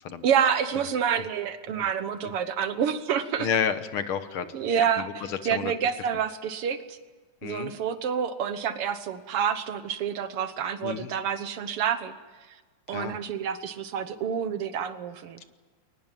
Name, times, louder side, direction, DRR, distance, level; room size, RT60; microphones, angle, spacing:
voice 1, 0.2-3.5 4.5-7.0 7.4-12.2 12.5-12.6 12.9-15.4, right 8 dB, 60° right, 11 dB, 1.7 m, -28 dB
voice 2, 3.4-4.5 5.0-5.7 7.4-7.7 10.8-11.1 12.9-13.2, left 7 dB, 60° left, 11 dB, 1.6 m, -30 dB
22.5 x 19.5 x 9.1 m, 1.3 s
omnidirectional pair, 3.4 m